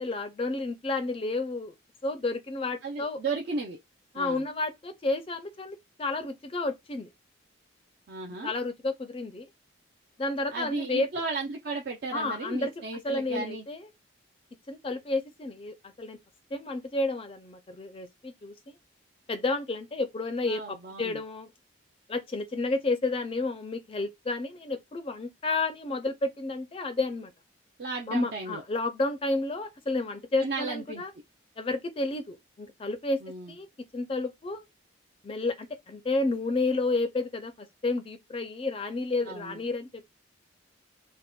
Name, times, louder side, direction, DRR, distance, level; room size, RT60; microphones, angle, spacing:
voice 1, 0.0-1.7 2.0-3.2 4.1-7.1 8.4-9.5 10.2-11.1 12.1-12.7 13.0-13.9 14.7-16.2 16.5-18.7 19.3-21.5 22.1-27.3 28.1-31.1 31.6-33.2 33.5-33.7 33.9-34.6 35.2-40.1, left 2 dB, 25° left, 0.4 m, -31 dB
voice 2, 2.8-3.8 4.1-4.4 8.1-8.5 10.5-13.6 20.5-21.2 27.8-28.6 30.4-31.0 33.2-33.5 39.2-39.6, right 3 dB, 50° right, 0.4 m, -35 dB
3.4 x 2.1 x 2.2 m
head